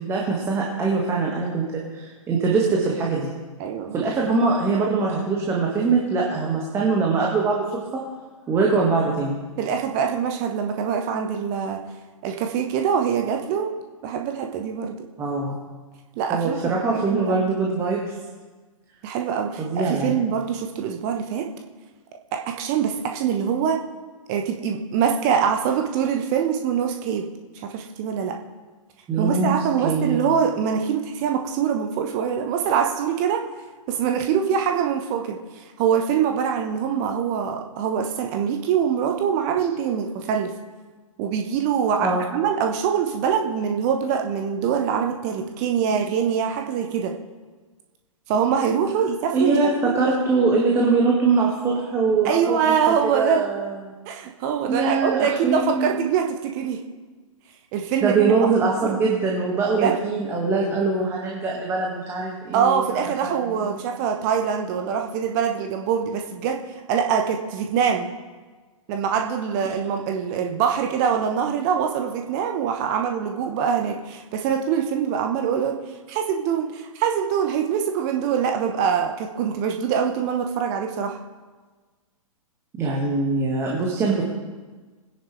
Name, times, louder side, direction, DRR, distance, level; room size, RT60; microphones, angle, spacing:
voice 1, 0.1-3.3 3.9-7.6 7.9-8.0 8.5-9.4 15.2-15.6 16.3-18.1 19.6-20.1 29.1-29.5 29.8-30.2 42.0-42.2 49.3-52.6 53.1-53.9 54.7-55.9 58.0-63.7 82.8-84.3, right 4 dB, 15° right, -2 dB, 1.8 m, -22 dB
voice 2, 3.6-4.0 9.6-11.8 12.2-13.7 14.0-15.1 16.2-17.4 19.0-21.5 22.3-23.8 24.3-27.3 27.6-28.4 29.2-33.4 33.9-40.5 41.2-47.1 48.3-50.1 52.2-53.4 54.1-56.8 57.7-58.5 58.8-59.0 59.8-60.0 62.5-66.6 66.9-68.1 68.9-75.8 76.1-81.2, right 7 dB, 30° right, 3 dB, 1.1 m, -24 dB
22.0 x 10.5 x 3.4 m, 1.4 s
figure-of-eight pair, 115°, 18 cm